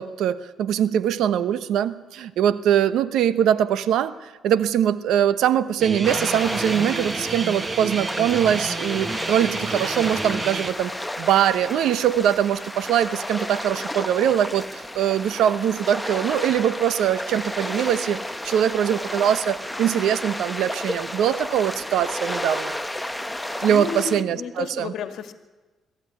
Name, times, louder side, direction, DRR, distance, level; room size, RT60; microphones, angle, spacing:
voice 1, 0.0-22.7 23.6-24.9, right 10 dB, 80° right, 14 dB, 0.9 m, -22 dB
Guitar, 5.8-10.7, right 3 dB, 30° right, 1.6 m, -30 dB
sound 1, 6.0-24.2, left 1 dB, 5° left, 1.0 m, -32 dB
voice 2, 23.7-25.3, left 7 dB, 75° left, 8 dB, 1.9 m, -32 dB
23.0 x 13.5 x 9.7 m, 1.3 s
cardioid pair, 90°, 0 cm